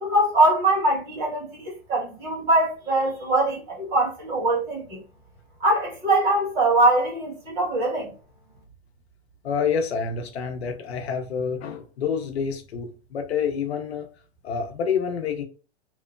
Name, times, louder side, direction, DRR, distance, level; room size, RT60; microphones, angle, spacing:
voice 1, 0.0-5.0 5.6-8.1, right 2 dB, 30° right, 1.3 m, -22 dB
voice 2, 9.4-14.1 14.4-15.4, left 6 dB, 75° left, 0.7 m, -28 dB
3.0 x 2.1 x 2.3 m
hypercardioid pair, 125°, 31 cm